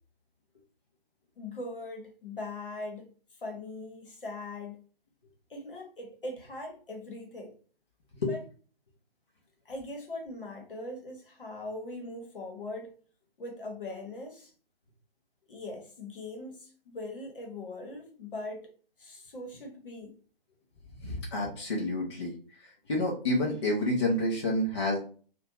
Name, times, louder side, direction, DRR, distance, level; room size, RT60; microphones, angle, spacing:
voice 1, 1.4-3.1 3.4-4.8 5.5-7.5 8.3-8.4 9.6-12.9 13.4-14.5 15.5-18.7 19.0-20.1, left 2 dB, 60° left, 1.0 m, -40 dB
voice 2, 21.0-22.3 22.9-25.0, left 1 dB, 30° left, 0.5 m, -28 dB
2.5 x 2.2 x 2.7 m
figure-of-eight pair, 135°, 30 cm